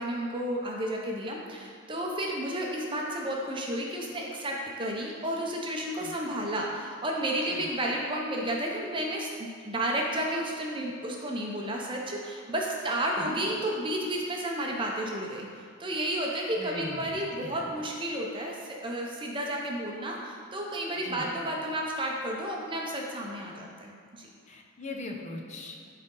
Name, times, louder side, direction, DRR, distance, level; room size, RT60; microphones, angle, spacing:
voice 1, 0.0-15.5 15.8-24.3, right 1 dB, 25° right, -1 dB, 0.7 m, -32 dB
voice 2, 16.6-17.8 21.0-21.3 24.5-25.9, left 2 dB, 35° left, 1 dB, 0.7 m, -40 dB
11.5 x 4.2 x 3.8 m, 2.3 s
head